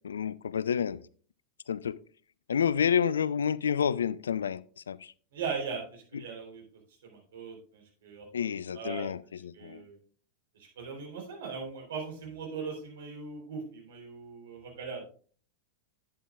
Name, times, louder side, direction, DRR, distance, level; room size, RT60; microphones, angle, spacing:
voice 1, 0.0-1.0 1.7-2.0 2.5-5.1 8.3-9.8, left 7 dB, 70° left, 0.3 m, -29 dB
voice 2, 5.3-6.6 7.0-8.4 8.7-9.1 9.5-10.0 10.6-15.0, right 5 dB, 60° right, 3.6 m, -39 dB
11.0 x 8.8 x 2.4 m
figure-of-eight pair, 90°, 0 cm